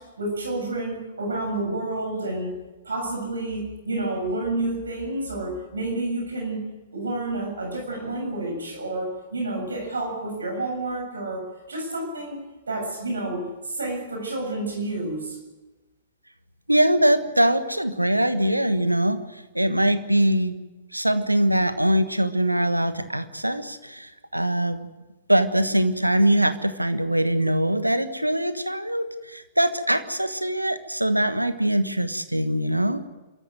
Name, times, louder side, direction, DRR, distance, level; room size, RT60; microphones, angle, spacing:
voice 1, 0.0-2.6 2.8-11.4 11.7-12.4 12.7-15.4, right 2 dB, 70° right, 1 dB, 7.1 m, -29 dB
voice 2, 16.7-20.5 20.9-24.8 25.3-33.1, right 1 dB, 85° right, 11 dB, 1.3 m, -22 dB
27.5 x 14.0 x 9.1 m, 1.1 s
figure-of-eight pair, 110°, 0 cm